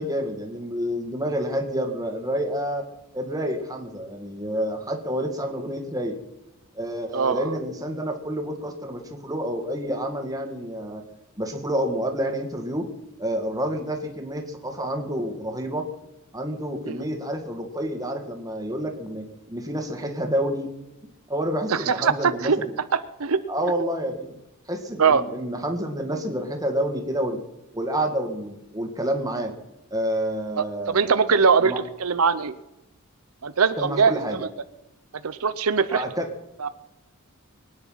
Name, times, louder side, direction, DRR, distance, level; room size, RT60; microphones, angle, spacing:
voice 1, 0.0-2.9 3.1-6.2 6.7-11.0 11.4-12.9 13.2-15.9 16.3-20.7 21.3-22.7 23.5-24.3 24.7-27.4 27.7-29.5 29.9-31.8 33.8-34.5 35.9-36.3, equal, 15° right, 4 dB, 2.0 m, -29 dB
voice 2, 7.1-7.5 16.9-17.0 21.7-22.6 22.9-23.4 25.0-25.2 30.6-31.7 32.0-32.5 33.4-34.4 35.2-36.0 36.6-36.7, right 5 dB, 80° right, 12 dB, 0.7 m, -21 dB
23.0 x 9.7 x 5.7 m, 0.91 s
head